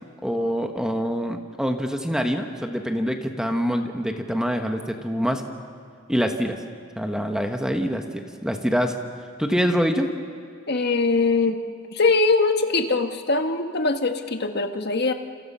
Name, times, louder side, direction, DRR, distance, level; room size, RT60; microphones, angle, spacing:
voice 1, 0.2-5.4 6.1-6.6 7.0-8.9 9.4-10.1, equal, 5° right, 4 dB, 1.3 m, -25 dB
voice 2, 10.7-11.6 11.9-15.1, left 3 dB, 55° left, 5 dB, 1.6 m, -22 dB
29.0 x 28.0 x 5.6 m, 2.3 s
head